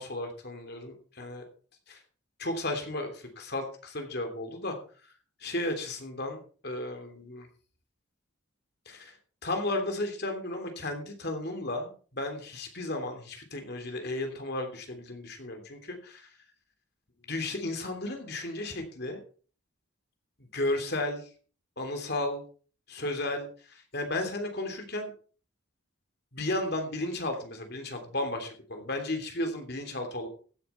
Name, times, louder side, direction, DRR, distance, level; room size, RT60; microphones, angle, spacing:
voice 1, 0.0-1.4 1.9-2.0 2.4-4.8 5.4-7.5 8.9-9.1 9.4-16.3 17.3-19.2 20.5-21.3 21.8-22.4 22.9-25.1 26.3-30.3, left 2 dB, 50° left, 5 dB, 3.2 m, -34 dB
15.5 x 9.5 x 4.5 m, 0.41 s
head